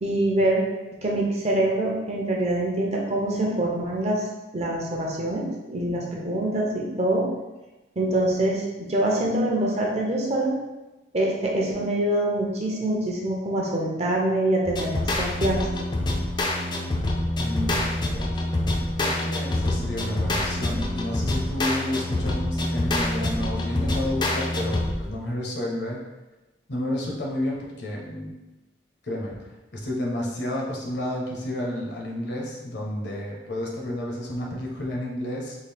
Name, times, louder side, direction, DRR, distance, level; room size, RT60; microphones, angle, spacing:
voice 1, 0.0-0.6 1.0-4.2 4.5-7.3 8.0-10.5 11.1-15.7, right 1 dB, 40° right, -2 dB, 0.6 m, -25 dB
sound 1, 14.6-25.1, left 1 dB, 25° left, 0.4 m, -26 dB
voice 2, 17.4-18.3 19.0-26.0 26.7-28.3 29.0-29.4 29.7-35.5, left 1 dB, 70° left, -2 dB, 0.9 m, -31 dB
3.7 x 2.4 x 3.3 m, 1.1 s
head